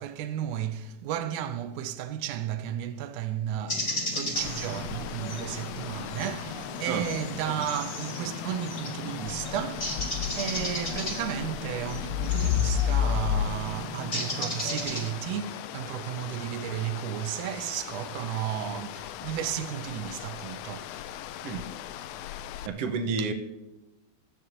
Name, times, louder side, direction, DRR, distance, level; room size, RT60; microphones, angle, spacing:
voice 1, 0.0-21.0 23.2-23.3, right 10 dB, 85° right, 2.1 m, -34 dB
sound 1, 3.7-15.1, left 1 dB, 20° left, 1.5 m, -35 dB
sound 2, 4.3-22.7, left 10 dB, 80° left, 1.8 m, -35 dB
voice 2, 22.6-23.3, right 5 dB, 65° right, 1.8 m, -29 dB
16.0 x 12.5 x 2.8 m
omnidirectional pair, 3.4 m